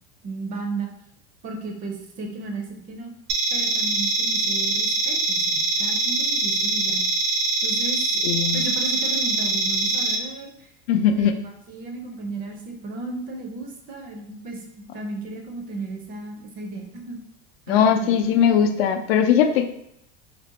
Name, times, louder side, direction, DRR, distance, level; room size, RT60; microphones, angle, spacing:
voice 1, 0.2-0.9 1.4-3.1 3.5-7.0 7.6-8.0 8.5-10.7 11.1-17.2 17.7-18.1, right 3 dB, 30° right, 3 dB, 0.4 m, -34 dB
sound 1, 3.3-10.2, right 3 dB, 85° right, 0.6 m, -23 dB
voice 2, 8.2-8.6 10.9-11.3 17.7-19.7, left 8 dB, 80° left, 6 dB, 0.4 m, -19 dB
2.6 x 2.1 x 3.8 m, 0.75 s
supercardioid pair, 155°, 29 cm